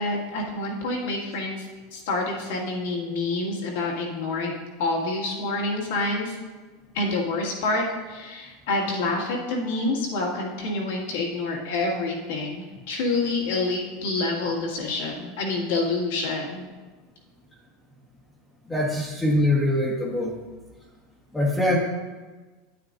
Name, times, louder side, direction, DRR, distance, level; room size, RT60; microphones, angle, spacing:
voice 1, 0.0-4.5 4.8-6.4 6.9-16.7, left 2 dB, 75° left, -3 dB, 2.1 m, -27 dB
voice 2, 18.7-20.3 21.3-21.8, left 1 dB, 10° left, -4 dB, 1.3 m, -23 dB
9.1 x 9.0 x 2.7 m, 1.3 s
hypercardioid pair, 100°, 0 cm